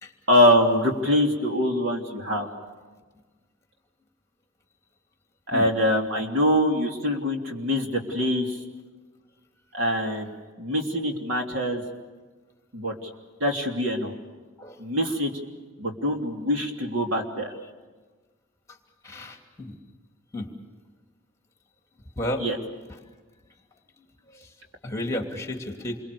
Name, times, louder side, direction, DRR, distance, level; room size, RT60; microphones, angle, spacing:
voice 1, 0.3-2.5 5.5-8.6 9.7-10.3 10.6-11.8 12.7-12.9 13.4-14.1 14.8-15.3 15.8-17.5 22.4-22.6, equal, 65° right, 2 dB, 3.2 m, -24 dB
voice 2, 19.0-19.7 20.3-20.5 22.2-22.4 22.9-23.0 24.3-24.5 24.8-26.0, left 1 dB, 15° left, 3 dB, 2.7 m, -32 dB
28.5 x 24.0 x 7.0 m, 1.3 s
head